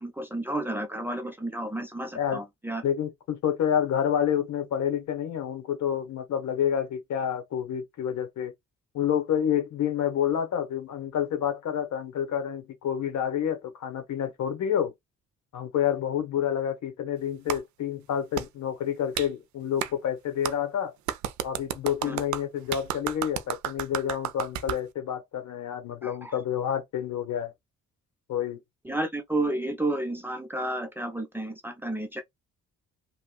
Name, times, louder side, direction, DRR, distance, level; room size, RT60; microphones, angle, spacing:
voice 1, 0.0-2.8 22.1-22.2 26.0-26.3 28.8-32.2, right 1 dB, 5° right, 0.7 m, -31 dB
voice 2, 2.8-8.5 8.9-14.9 15.5-20.9 21.4-27.5 28.3-28.6, left 9 dB, 70° left, 1.1 m, -28 dB
Clapping, 17.5-17.6 18.4-18.5 19.2-19.3 19.8-19.9 20.4-20.6 21.1-24.8, right 11 dB, 70° right, 0.5 m, -32 dB
2.9 x 2.3 x 2.4 m
cardioid pair, 90°, 30 cm